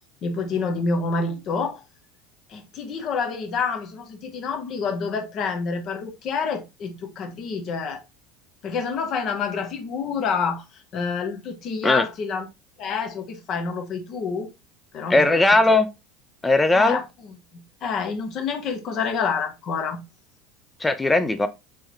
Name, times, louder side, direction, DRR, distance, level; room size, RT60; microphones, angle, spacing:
voice 1, 0.2-1.8 2.5-8.0 8.6-12.5 12.8-14.5 14.9-15.4 16.7-20.0, left 5 dB, 50° left, 1.0 m, -28 dB
voice 2, 15.1-15.9 16.4-17.0 20.8-21.5, left 2 dB, 15° left, 0.4 m, -18 dB
3.4 x 3.2 x 3.0 m
hypercardioid pair, 80°, 0 cm